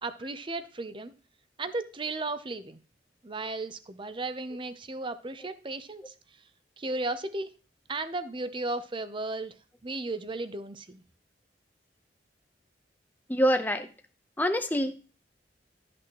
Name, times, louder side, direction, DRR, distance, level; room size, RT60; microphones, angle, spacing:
voice 1, 0.0-1.1 1.6-2.8 3.2-6.1 6.8-7.5 7.9-9.6 9.8-11.0, right 2 dB, 30° right, 12 dB, 0.7 m, -35 dB
voice 2, 13.3-13.9 14.4-14.9, equal, 10° left, 7 dB, 0.8 m, -25 dB
12.5 x 6.1 x 3.0 m, 0.36 s
head